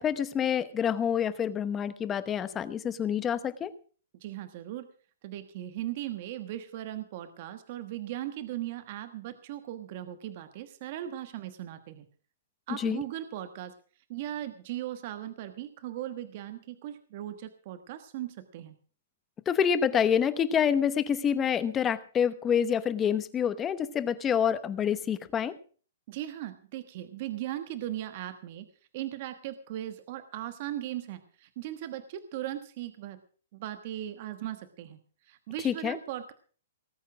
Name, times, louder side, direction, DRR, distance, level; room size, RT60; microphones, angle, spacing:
voice 1, 0.0-3.7 12.7-13.0 19.5-25.6 35.6-36.0, left 8 dB, 15° left, 14 dB, 0.9 m, -27 dB
voice 2, 4.2-4.9 5.2-12.1 12.7-13.7 14.1-18.8 26.1-28.7 28.9-33.2 33.5-35.0 35.3-36.3, right 13 dB, 40° right, 10 dB, 1.3 m, -38 dB
19.0 x 8.4 x 6.0 m, 0.41 s
hypercardioid pair, 160°, 0 cm